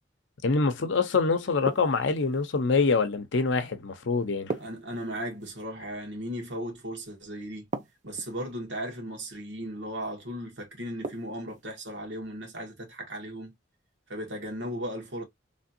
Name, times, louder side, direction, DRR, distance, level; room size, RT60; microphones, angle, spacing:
voice 1, 0.4-4.5, left 4 dB, 75° left, 0.6 m, -25 dB
sound 1, 1.7-2.4 4.5-5.5 7.7-8.5 11.0-11.7, right 3 dB, 40° right, 0.5 m, -37 dB
voice 2, 4.6-7.7 8.0-13.5 14.1-15.2, equal, 70° right, 1.6 m, -36 dB
3.3 x 2.6 x 2.6 m
head